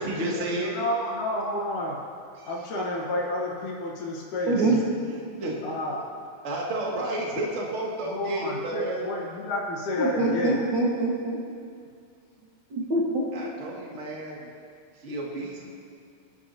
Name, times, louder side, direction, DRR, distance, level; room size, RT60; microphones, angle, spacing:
voice 1, 0.0-0.7 2.3-2.7 4.6-4.8 5.4-5.6 6.4-9.1 13.3-14.5 14.9-15.7, right 1 dB, 25° right, -4 dB, 1.9 m, -31 dB
voice 2, 0.7-2.0 2.5-4.6 5.6-6.1 8.2-10.6, left 1 dB, 70° left, -5 dB, 2.9 m, -30 dB
voice 3, 4.5-4.8 10.0-11.4 12.7-13.2, right 2 dB, 45° right, -6 dB, 1.7 m, -24 dB
24.0 x 11.5 x 2.8 m, 2.2 s
omnidirectional pair, 3.8 m